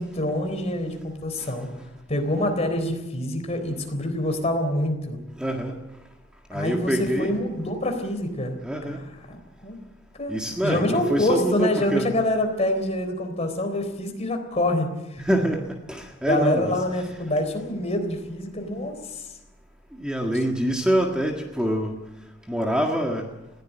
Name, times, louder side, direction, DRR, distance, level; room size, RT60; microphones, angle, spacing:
voice 1, 0.0-1.7 2.1-5.2 6.5-8.6 8.9-9.0 9.3-9.8 10.2-10.3 10.6-15.2 16.3-19.3, left 1 dB, 35° left, 6 dB, 3.8 m, -26 dB
voice 2, 5.4-5.7 6.5-7.4 8.6-9.0 10.3-12.1 15.2-16.8 20.0-22.0 22.5-23.3, equal, 5° right, 1 dB, 1.8 m, -25 dB
20.5 x 16.0 x 9.2 m, 1.0 s
head